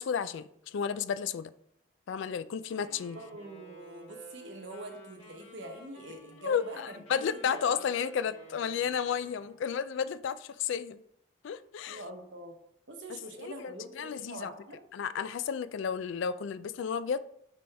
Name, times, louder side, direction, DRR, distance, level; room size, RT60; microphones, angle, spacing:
voice 1, 0.0-1.5 2.1-3.2 6.4-11.0 11.4-12.0 13.4-14.5 14.9-17.2, left 7 dB, 65° left, 15 dB, 0.3 m, -32 dB
Wind instrument woodwind instrument, 2.7-9.6, right 1 dB, 30° left, 1.6 m, -52 dB
voice 2, 3.1-7.2 7.5-7.6 11.9-12.5 12.9-14.8, right 1 dB, 65° right, 4 dB, 1.0 m, -44 dB
9.2 x 3.4 x 3.4 m, 0.74 s
head